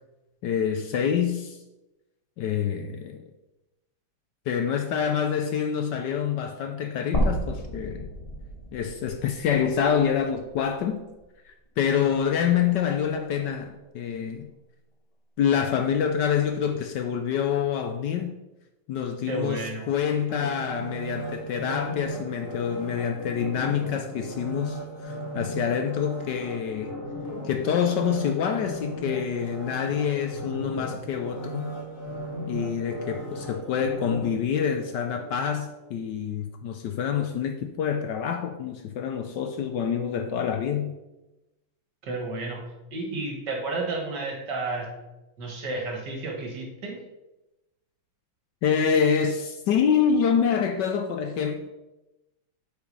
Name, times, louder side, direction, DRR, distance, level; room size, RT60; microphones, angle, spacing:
voice 1, 0.4-1.6 2.4-3.2 4.5-8.1 8.7-11.0 11.5-14.5 15.4-18.3 18.9-27.0 27.4-31.7 32.5-41.0 48.6-51.7, left 7 dB, 70° left, 6 dB, 1.1 m, -26 dB
sound 1, 7.1-11.3 11.7-11.8 13.2-13.3, equal, 25° left, 1.1 m, -32 dB
voice 2, 19.3-19.9 42.0-45.0 45.4-47.0, right 2 dB, 60° right, 1 dB, 2.1 m, -32 dB
sound 2, 20.3-35.3 35.8-35.9, equal, 40° left, 2.7 m, -36 dB
7.9 x 5.1 x 5.4 m, 1.0 s
omnidirectional pair, 2.2 m